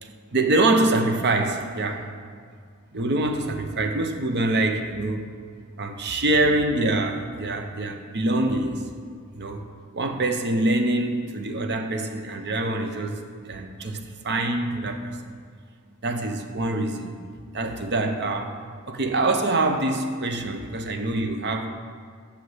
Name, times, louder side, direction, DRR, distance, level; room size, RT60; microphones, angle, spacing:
voice 1, 0.0-2.1 2.9-5.3 5.8-8.8 9.3-9.6 9.9-15.2 16.0-17.1 17.5-18.6 18.9-21.7, right 2 dB, 55° right, 5 dB, 0.9 m, -25 dB
6.5 x 6.5 x 7.3 m, 2.1 s
head